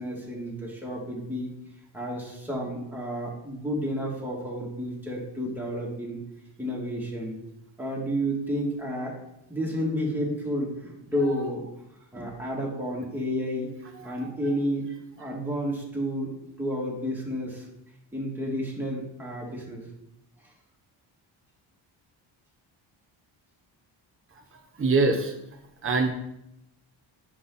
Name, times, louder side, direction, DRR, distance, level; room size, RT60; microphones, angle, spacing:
voice 1, 0.0-1.5 1.9-6.2 6.6-7.4 7.8-9.2 9.5-11.6 12.1-13.8 14.0-14.8 15.2-16.3 16.6-17.6 18.1-19.9, equal, 5° right, -4 dB, 2.8 m, -31 dB
voice 2, 14.0-14.3 15.2-15.4 24.5-25.3 25.8-26.1, right 3 dB, 25° right, 2 dB, 1.0 m, -26 dB
9.2 x 6.1 x 4.2 m, 0.82 s
cardioid pair, 100°, 48 cm